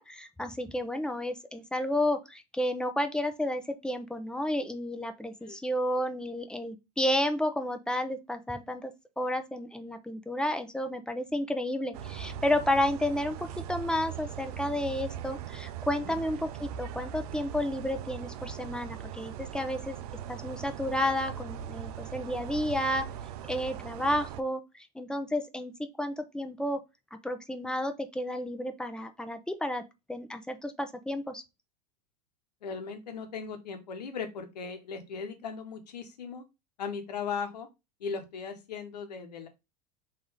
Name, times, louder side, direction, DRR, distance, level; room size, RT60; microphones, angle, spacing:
voice 1, 0.0-20.0 20.3-23.0 23.5-25.7 26.0-26.8 27.2-29.8 30.1-31.4, left 1 dB, 5° left, 0.6 m, -31 dB
sound 1, 11.9-24.4, right 10 dB, 70° right, 0.5 m, -40 dB
voice 2, 32.6-36.4 36.8-37.7 38.0-39.5, left 5 dB, 85° left, 1.0 m, -38 dB
3.5 x 2.7 x 4.7 m
hypercardioid pair, 95°, 21 cm